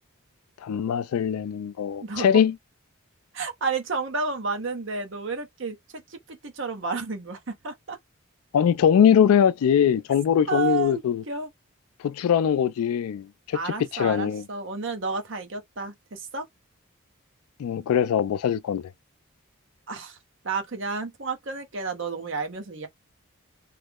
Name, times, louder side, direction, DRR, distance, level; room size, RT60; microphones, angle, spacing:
voice 1, 0.6-2.5 8.5-11.2 12.0-13.6 13.9-14.4 17.6-18.9, left 8 dB, 85° left, 0.3 m, -22 dB
voice 2, 2.0-2.5 3.3-8.0 10.5-11.0 11.3-11.5 13.5-16.5 19.9-20.2 20.4-22.9, right 4 dB, 60° right, 0.8 m, -31 dB
3.1 x 2.0 x 3.5 m
head